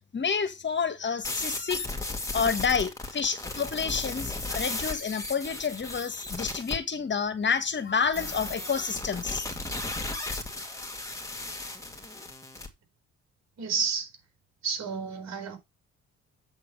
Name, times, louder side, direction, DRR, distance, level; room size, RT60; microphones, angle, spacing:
voice 1, 0.1-9.4, left 6 dB, 40° left, 1.4 m, -29 dB
sound 1, 1.2-6.8 8.1-12.7, left 2 dB, 10° left, 2.4 m, -35 dB
voice 2, 13.6-14.1 14.6-15.6, right 6 dB, 60° right, 4.4 m, -30 dB
8.1 x 4.5 x 6.3 m
cardioid pair, 90°, 30 cm